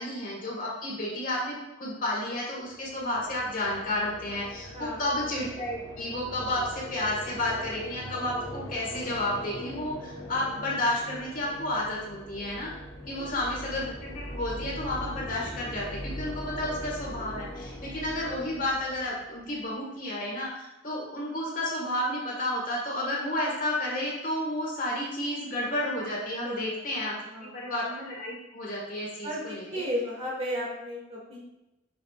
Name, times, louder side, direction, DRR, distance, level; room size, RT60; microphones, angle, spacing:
voice 1, 0.0-12.7 13.1-27.2 27.5-29.8, left 1 dB, 45° left, -3 dB, 1.6 m, -31 dB
sound 1, 2.6-19.6, equal, 20° left, 1.1 m, -41 dB
voice 2, 4.7-5.0 13.1-13.4 26.4-27.7 29.2-31.4, equal, 35° right, -5 dB, 2.3 m, -35 dB
7.3 x 6.1 x 2.4 m, 0.93 s
head